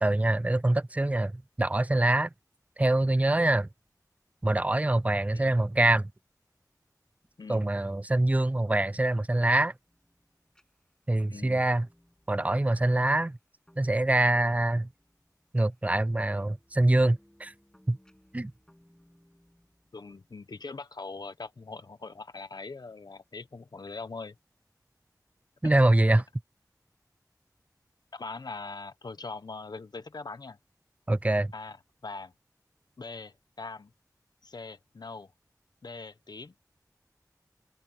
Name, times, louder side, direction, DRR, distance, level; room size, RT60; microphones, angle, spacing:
voice 1, 0.0-2.3 2.8-3.7 4.4-6.1 7.5-9.7 11.1-11.9 12.3-13.4 13.8-14.9 15.5-17.5 17.9-18.0 18.3-18.5 25.6-26.2 31.1-31.5, right 2 dB, 20° right, 0.4 m, -24 dB
voice 2, 7.4-7.7 11.3-11.7 19.9-24.4 25.6-25.7 28.1-30.6 31.5-31.8 32.0-32.3 33.0-33.9 34.4-35.3 35.8-36.5, left 3 dB, 85° left, 1.1 m, -41 dB
sound 1, 9.9-20.5, equal, 10° left, 7.4 m, -63 dB
open air
wide cardioid pair, 55°, 7 cm